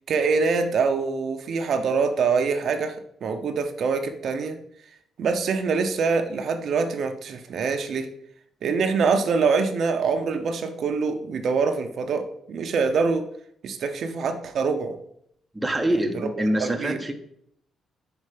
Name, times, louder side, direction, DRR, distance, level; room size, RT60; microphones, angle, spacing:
voice 1, 0.1-3.0 3.2-4.6 5.2-8.1 8.6-13.3 13.6-14.9 16.1-16.3 16.6-17.0, right 5 dB, 60° right, 6 dB, 0.7 m, -24 dB
voice 2, 15.5-17.1, right 1 dB, 10° right, 4 dB, 0.8 m, -25 dB
5.5 x 4.3 x 4.9 m, 0.70 s
cardioid pair, 100°, 0 cm